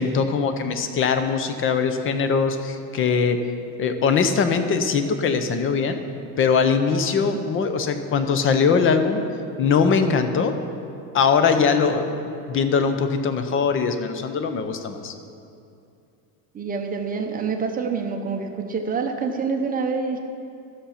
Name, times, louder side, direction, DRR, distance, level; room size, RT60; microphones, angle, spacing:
voice 1, 0.0-3.4 3.8-6.0 6.4-9.2 9.6-10.6 11.1-15.1, left 5 dB, 25° left, 8 dB, 0.6 m, -21 dB
voice 2, 16.5-20.2, right 5 dB, 20° right, 4 dB, 0.7 m, -27 dB
13.0 x 7.0 x 5.7 m, 2.6 s
cardioid pair, 155°, 47 cm